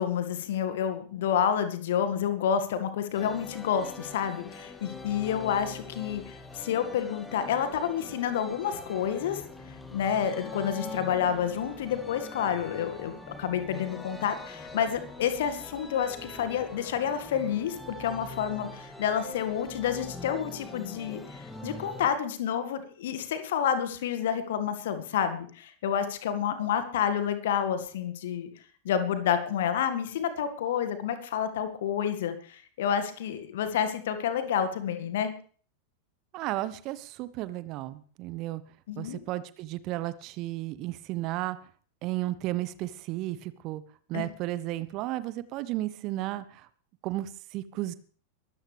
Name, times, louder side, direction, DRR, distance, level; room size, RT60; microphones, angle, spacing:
voice 1, 0.0-9.4 9.9-28.5 28.8-35.3 38.9-39.2 44.1-44.3, left 8 dB, 55° left, 9 dB, 2.0 m, -29 dB
sound 1, 3.1-22.1, left 2 dB, 10° left, 2.4 m, -43 dB
voice 2, 36.3-38.6 39.0-41.6 42.0-43.8 44.1-46.7 47.0-47.9, right 16 dB, 40° right, 15 dB, 1.1 m, -33 dB
22.5 x 13.5 x 3.5 m, 0.43 s
figure-of-eight pair, 90°, 0 cm